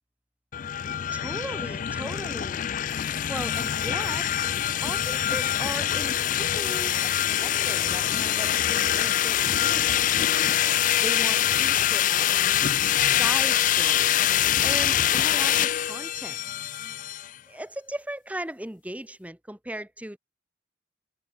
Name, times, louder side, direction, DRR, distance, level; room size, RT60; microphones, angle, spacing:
sound 1, 0.5-17.3, left 11 dB, 45° left, 0.3 m, -24 dB
voice 1, 1.1-2.9 3.3-4.3 4.8-10.6 11.0-12.7 13.0-16.4 17.5-20.2, right 1 dB, 10° right, 1.9 m, -38 dB
head